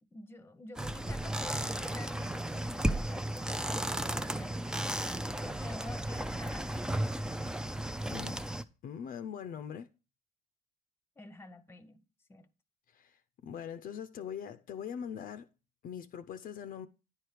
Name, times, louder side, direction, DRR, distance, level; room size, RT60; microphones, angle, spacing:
voice 1, 0.0-3.6 4.1-5.1 5.4-7.2 11.2-12.0 12.3-12.5, left 2 dB, 15° left, 0.8 m, -50 dB
sound 1, 0.8-8.6, right 1 dB, 5° right, 0.4 m, -34 dB
voice 2, 8.1-8.4 8.8-9.9 12.9-15.5 15.8-16.9, left 8 dB, 55° left, 0.6 m, -42 dB
10.0 x 4.6 x 5.0 m
cardioid pair, 110°, 17 cm